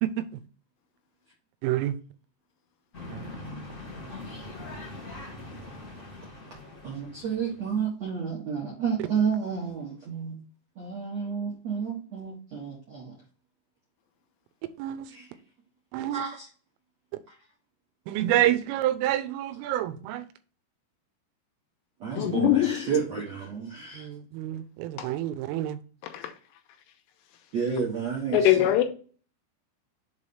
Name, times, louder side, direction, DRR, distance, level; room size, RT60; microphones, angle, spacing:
voice 1, 0.0-0.4 1.6-2.0 3.1-3.3 14.8-15.1 15.9-16.2 18.1-20.3 23.9-25.8, right 13 dB, 85° right, 3.2 m, -28 dB
sound 1, 2.9-7.8, left 2 dB, 40° left, 1.1 m, -42 dB
voice 2, 6.8-10.4 10.8-13.2 15.1-15.3 16.1-16.4 22.0-24.1 27.5-28.7, right 6 dB, 70° right, 1.6 m, -31 dB
voice 3, 22.2-22.8 25.0-25.1 26.1-26.2 28.3-28.8, left 13 dB, 85° left, 3.4 m, -21 dB
7.5 x 3.2 x 5.5 m
omnidirectional pair, 5.7 m